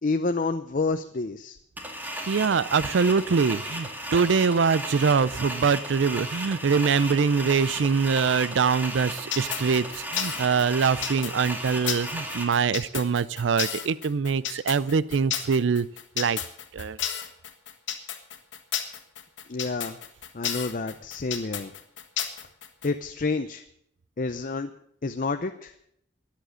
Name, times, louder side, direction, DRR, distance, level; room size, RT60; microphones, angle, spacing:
voice 1, 0.0-1.6 19.5-20.0 20.3-21.7 22.8-23.6 24.2-24.7 25.0-25.7, left 3 dB, 45° left, 8 dB, 0.6 m, -29 dB
sound 1, 1.8-12.4, equal, 10° right, 2.1 m, -35 dB
voice 2, 2.3-9.8 10.1-15.9 16.2-16.4 16.7-17.0, right 5 dB, 80° right, 19 dB, 0.5 m, -23 dB
sound 2, 9.3-22.9, left 9 dB, 90° left, 1.6 m, -32 dB
13.5 x 10.5 x 6.3 m, 0.72 s
head